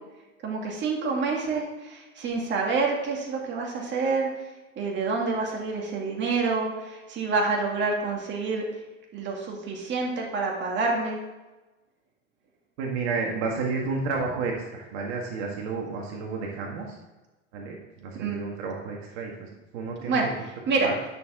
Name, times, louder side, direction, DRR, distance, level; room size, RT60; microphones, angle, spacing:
voice 1, 0.4-1.6 1.9-4.3 4.8-6.7 7.1-8.6 9.1-11.2 18.1-18.4 20.0-20.2 20.7-20.9, right 4 dB, 30° right, 0 dB, 2.2 m, -27 dB
voice 2, 12.8-17.0 17.5-19.5 19.7-20.3 20.8-20.9, right 4 dB, 60° right, 0 dB, 1.8 m, -31 dB
10.5 x 6.5 x 3.7 m, 1.1 s
hypercardioid pair, 115°, 36 cm